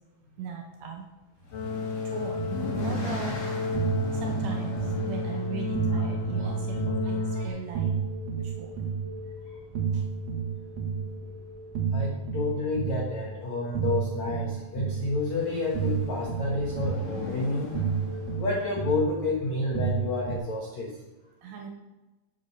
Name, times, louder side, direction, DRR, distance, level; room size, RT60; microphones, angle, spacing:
voice 1, 0.4-1.1 2.1-2.4 2.8-3.4 4.1-8.0 8.4-8.7 9.9-10.0 21.4-21.7, right 5 dB, 70° right, 2 dB, 2.7 m, -38 dB
sound 1, 1.4-7.6 8.6-9.0 9.3-9.4 9.7-9.8 14.9-19.3, left 3 dB, 40° left, 1.5 m, -39 dB
sound 2, 1.5-7.5, left 2 dB, 90° left, 1.4 m, -31 dB
sound 3, 2.3-20.4, right 6 dB, 55° right, 2.4 m, -32 dB
voice 2, 11.9-17.8 18.3-21.0, left 2 dB, 75° left, -1 dB, 1.6 m, -30 dB
11.5 x 7.4 x 6.9 m, 1.1 s
omnidirectional pair, 5.8 m